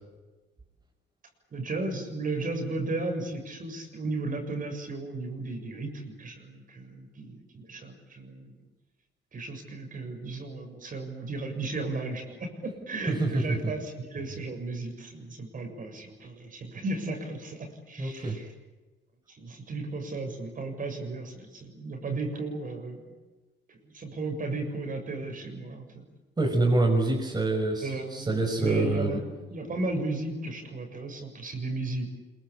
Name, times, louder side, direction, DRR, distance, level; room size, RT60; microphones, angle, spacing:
voice 1, 1.5-8.6 9.3-18.5 19.3-23.1 23.7-26.1 27.8-32.1, right 2 dB, 40° right, 4 dB, 7.1 m, -35 dB
voice 2, 18.0-18.4 26.4-29.2, right 2 dB, 20° right, 1 dB, 5.4 m, -26 dB
27.0 x 23.0 x 8.7 m, 1.2 s
cardioid pair, 120°, 20 cm